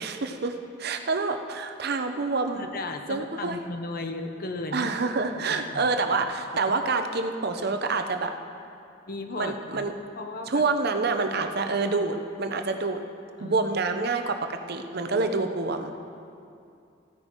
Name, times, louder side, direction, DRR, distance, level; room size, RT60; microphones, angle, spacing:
voice 1, 0.0-2.7 3.1-3.6 4.7-8.3 9.4-9.9 10.5-13.0 13.4-16.0, right 3 dB, 55° right, 7 dB, 0.8 m, -27 dB
voice 2, 2.5-5.9 9.1-10.6 13.4-13.6, left 2 dB, 50° left, 6 dB, 0.8 m, -36 dB
15.0 x 9.9 x 4.6 m, 2.5 s
head